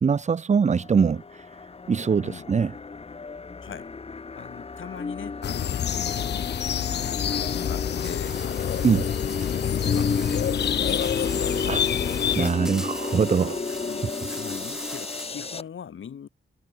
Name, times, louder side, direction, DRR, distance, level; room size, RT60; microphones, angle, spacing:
voice 1, 0.0-2.7 8.8-9.1 11.7-11.8 12.4-13.6, right 6 dB, 35° right, 0.6 m, -23 dB
sound 1, 0.7-15.6, left 4 dB, 30° left, 0.9 m, -33 dB
voice 2, 3.6-3.9 4.3-6.5 7.4-8.9 9.4-11.9 13.7-16.3, left 8 dB, 90° left, 5.4 m, -41 dB
sound 2, 5.4-12.5, left 10 dB, 60° left, 0.4 m, -27 dB
sound 3, 8.0-15.5, equal, 5° right, 0.8 m, -40 dB
wide cardioid pair, 105°, 20 cm